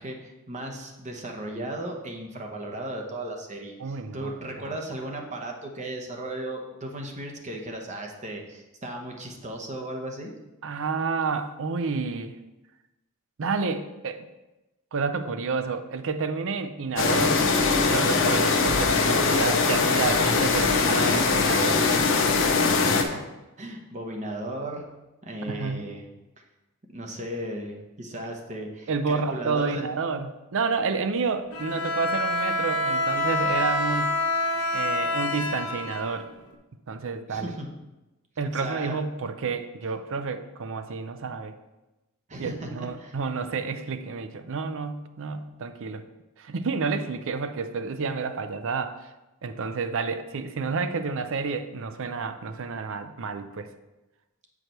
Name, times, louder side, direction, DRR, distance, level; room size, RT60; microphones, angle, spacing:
voice 1, 0.0-10.3 22.6-23.2 23.6-24.8 25.2-26.0 26.9-29.8 37.3-37.7 38.5-39.0 42.3-43.2, right 1 dB, 35° right, 1 dB, 1.0 m, -36 dB
voice 2, 3.8-4.3 4.6-4.8 10.6-12.4 13.4-14.3 14.9-17.5 17.8-21.8 25.5-25.9 28.9-34.2 34.7-36.3 36.9-37.5 38.4-41.5 42.4-46.0 46.4-49.1 49.4-53.7, right 4 dB, 65° right, 9 dB, 0.5 m, -30 dB
sound 1, 17.0-23.0, left 4 dB, 60° left, 0.8 m, -22 dB
Bowed string instrument, 31.5-36.5, left 2 dB, 90° left, 1.0 m, -27 dB
8.0 x 4.9 x 4.4 m, 1.0 s
head